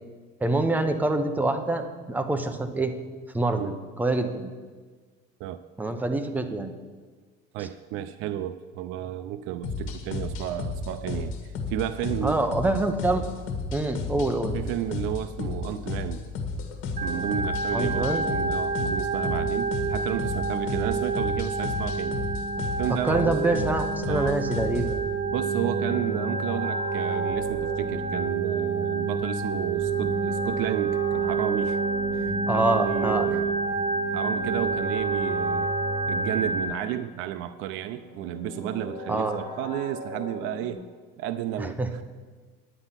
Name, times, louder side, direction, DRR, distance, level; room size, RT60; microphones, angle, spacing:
voice 1, 0.4-2.9 3.3-4.5 5.8-6.7 12.2-13.2 13.7-14.5 17.7-18.2 22.9-25.1 32.5-33.4 39.1-39.4 41.6-41.9, right 2 dB, 10° right, 6 dB, 0.8 m, -26 dB
voice 2, 7.5-12.6 14.5-16.3 17.0-22.2 22.8-23.7 24.0-24.4 25.3-31.8 32.1-33.6 34.1-35.8 36.1-40.8 41.2-42.0, right 12 dB, 70° right, 9 dB, 0.5 m, -32 dB
sound 1, 9.6-25.0, left 4 dB, 70° left, 1.8 m, -33 dB
Organ, 17.0-36.7, right 4 dB, 35° right, 1.3 m, -28 dB
sound 2, 24.9-40.7, equal, 30° left, 3.4 m, -41 dB
10.0 x 9.0 x 5.7 m, 1.5 s
cardioid pair, 145°, 21 cm